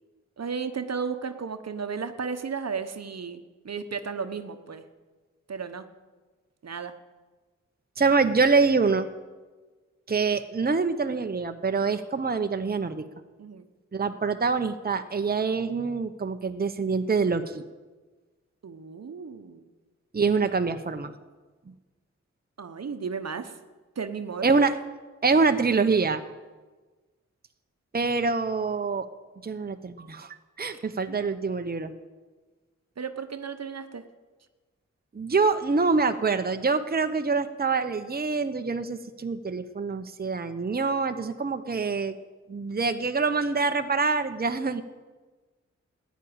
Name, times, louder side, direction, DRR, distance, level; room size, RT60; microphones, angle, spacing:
voice 1, 0.4-4.8 5.5-5.8 6.6-6.9 13.4-13.7 18.6-19.6 22.6-23.6 24.0-24.5 31.1-31.2 33.0-34.0, right 5 dB, 60° right, 9 dB, 1.1 m, -34 dB
voice 2, 8.0-9.1 10.1-13.1 13.9-17.6 20.1-21.1 24.4-24.8 25.2-26.2 27.9-29.1 29.4-31.9 35.1-42.2 42.5-44.8, right 4 dB, 30° right, 8 dB, 0.9 m, -25 dB
14.0 x 10.5 x 8.8 m, 1.3 s
cardioid pair, 45°, 29 cm